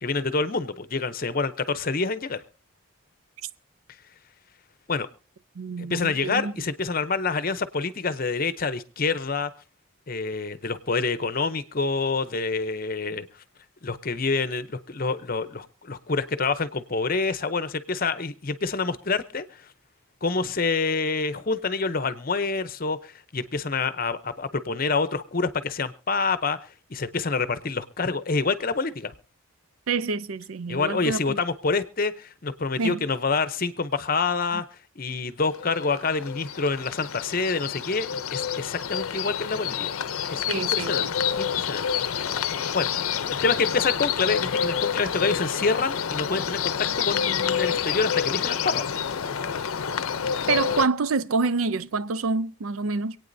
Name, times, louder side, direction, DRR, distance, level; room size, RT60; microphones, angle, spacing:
voice 1, 0.0-2.4 4.9-5.1 5.8-9.5 10.1-13.3 13.8-19.6 20.2-26.6 26.9-29.1 30.7-34.7 35.0-39.9 40.3-41.1 41.3-41.9 42.2-42.4 42.7-48.9, left 4 dB, 40° left, 0.7 m, -27 dB
voice 2, 5.6-6.5 29.9-31.4 32.8-33.1 40.5-41.1 50.5-53.2, right 4 dB, 80° right, 0.5 m, -27 dB
sound 1, 35.4-50.9, left 8 dB, 85° left, 0.6 m, -28 dB
26.5 x 9.0 x 2.7 m
head